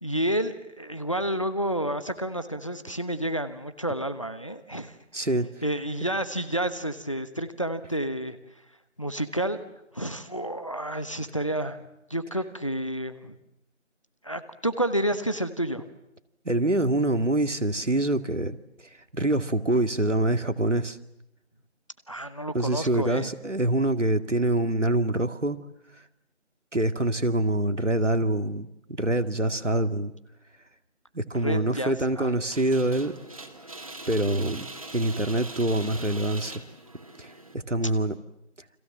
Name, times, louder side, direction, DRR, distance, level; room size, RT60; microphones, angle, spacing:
voice 1, 0.0-5.0 5.6-8.4 9.0-9.6 9.9-11.8 12.1-13.3 14.2-15.8 22.1-23.3 31.4-32.4, right 1 dB, 25° left, 11 dB, 1.1 m, -30 dB
voice 2, 5.1-5.5 16.4-18.6 19.1-21.0 22.5-25.6 26.7-30.1 31.1-33.2 34.1-34.7 34.9-36.6 37.2-38.2, right 1 dB, 75° right, 8 dB, 2.3 m, -25 dB
sound 1, 32.5-37.5, right 2 dB, 30° right, 2.6 m, -41 dB
29.5 x 26.5 x 7.4 m, 0.86 s
figure-of-eight pair, 170°, 36 cm